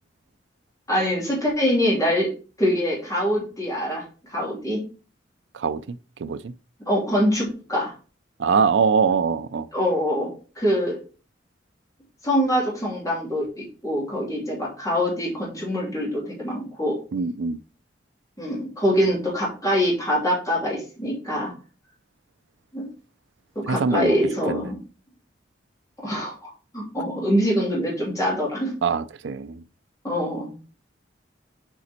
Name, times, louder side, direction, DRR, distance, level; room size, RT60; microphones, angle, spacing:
voice 1, 0.9-2.3 2.6-4.0 4.3-4.8 6.9-7.9 9.7-10.3 10.6-11.0 12.2-17.0 18.4-21.5 22.7-22.9 23.5-24.7 26.0-28.7 30.0-30.6, equal, 20° left, 2.8 m, -24 dB
voice 2, 5.5-6.5 8.4-9.7 17.1-17.6 23.7-24.2 24.5-24.7 28.8-29.6, right 5 dB, 75° right, 0.4 m, -23 dB
7.0 x 5.0 x 4.3 m
head